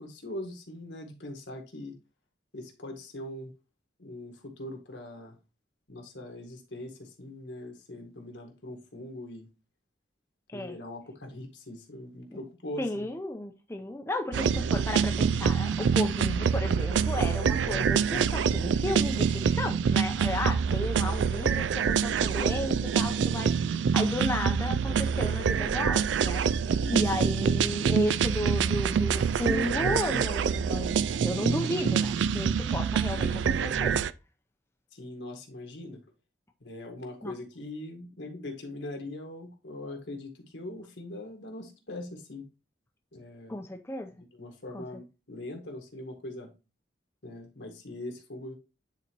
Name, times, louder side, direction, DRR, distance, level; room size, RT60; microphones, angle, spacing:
voice 1, 0.0-2.0 2.5-3.5 4.0-5.4 5.9-9.5 10.5-13.1 26.7-27.1 34.9-36.0 36.6-42.5 43.1-43.6 44.1-46.5 47.2-48.6, left 1 dB, 75° left, 1.8 m, -41 dB
voice 2, 12.8-26.4 26.9-34.1 37.2-37.3 43.5-44.1 44.7-44.8, left 1 dB, 15° left, 0.6 m, -33 dB
sound 1, 14.3-34.1, right 6 dB, 80° right, 0.3 m, -26 dB
9.4 x 4.2 x 3.0 m
head